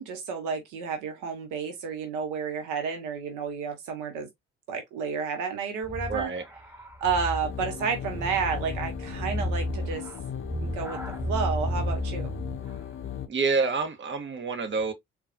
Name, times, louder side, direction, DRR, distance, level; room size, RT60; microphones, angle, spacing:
voice 1, 0.0-4.3 4.7-6.3 7.0-10.0 10.6-11.0 11.3-12.3, right 6 dB, 65° right, 0.8 m, -31 dB
sound 1, 5.8-12.7, equal, 5° right, 0.9 m, -33 dB
voice 2, 6.1-6.4 13.3-14.9, right 4 dB, 35° right, 0.9 m, -27 dB
sound 2, 7.4-13.3, left 9 dB, 40° left, 0.6 m, -37 dB
3.9 x 2.3 x 2.6 m
figure-of-eight pair, 40°, 33 cm